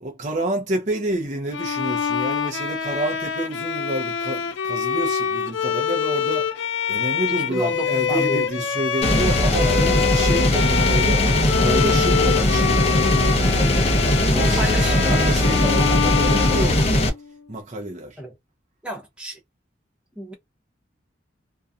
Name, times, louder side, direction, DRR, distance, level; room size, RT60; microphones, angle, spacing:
voice 1, 0.0-14.0 14.3-16.9 17.5-18.2, right 1 dB, 40° right, 0.6 m, -29 dB
Bowed string instrument, 1.5-17.4, left 7 dB, 70° left, 0.4 m, -25 dB
voice 2, 7.4-8.5 14.3-15.2 18.2-18.3 18.8-19.4 20.2-20.3, equal, 5° right, 0.8 m, -31 dB
sound 1, 9.0-17.1, left 1 dB, 35° left, 0.6 m, -19 dB
2.6 x 2.2 x 2.4 m
head